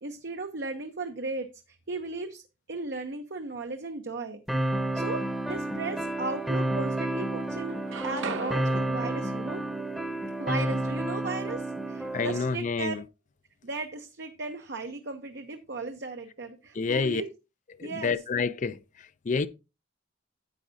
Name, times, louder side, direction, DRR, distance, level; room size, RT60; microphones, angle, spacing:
voice 1, 0.0-2.4 2.7-4.4 4.9-9.6 10.4-12.9 13.6-17.3 17.8-18.2, right 3 dB, 60° right, 0.8 m, -36 dB
sound 1, 4.5-12.5, right 1 dB, ahead, 0.9 m, -30 dB
sound 2, 5.1-5.7 6.2-7.2 7.5-11.5, right 4 dB, 85° right, 0.9 m, -42 dB
voice 2, 12.1-13.0 16.7-17.2 17.8-19.5, left 4 dB, 40° left, 0.4 m, -29 dB
10.5 x 8.4 x 2.7 m
head